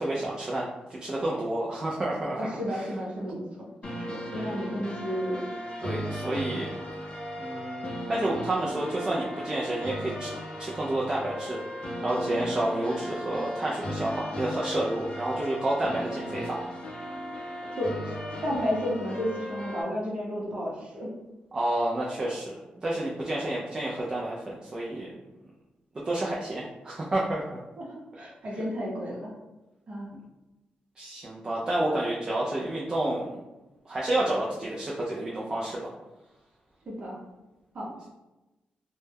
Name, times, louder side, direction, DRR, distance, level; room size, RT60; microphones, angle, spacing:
voice 1, 0.0-2.4 2.7-2.9 5.8-6.7 7.4-7.8 8.1-10.3 10.6-11.6 12.0-16.6 21.5-22.5 22.8-25.1 26.1-27.6 31.0-33.4 33.9-35.9, right 1 dB, 25° right, -5 dB, 0.3 m, -30 dB
voice 2, 2.4-3.4 3.9-5.4 17.8-18.1 18.4-21.1 27.8-29.3 29.9-30.1 36.9-37.2 37.7-37.9, equal, 40° right, -4 dB, 0.8 m, -32 dB
sound 1, 3.8-19.8, equal, 35° left, 0.5 m, -36 dB
2.2 x 2.0 x 3.3 m, 1.0 s
cardioid pair, 120°, 3 cm